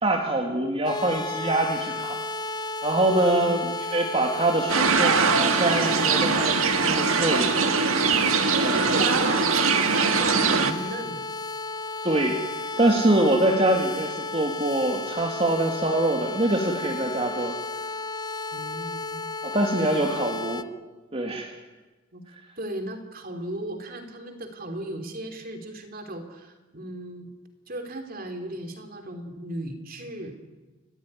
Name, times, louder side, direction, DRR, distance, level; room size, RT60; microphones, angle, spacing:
voice 1, 0.0-2.2 2.8-8.3 8.6-8.8 12.0-12.4 12.8-17.5 19.4-20.6 21.1-21.5, right 1 dB, 30° right, 1 dB, 2.2 m, -24 dB
sound 1, 0.8-20.6, left 3 dB, 20° left, 0.8 m, -33 dB
sound 2, 4.7-10.7, right 5 dB, 85° right, 1.8 m, -22 dB
voice 2, 8.6-11.2 18.5-19.3 19.9-20.2 22.1-22.2 22.6-27.3 27.7-30.4, right 1 dB, 45° right, 5 dB, 3.3 m, -36 dB
29.5 x 14.5 x 9.9 m, 1.2 s
head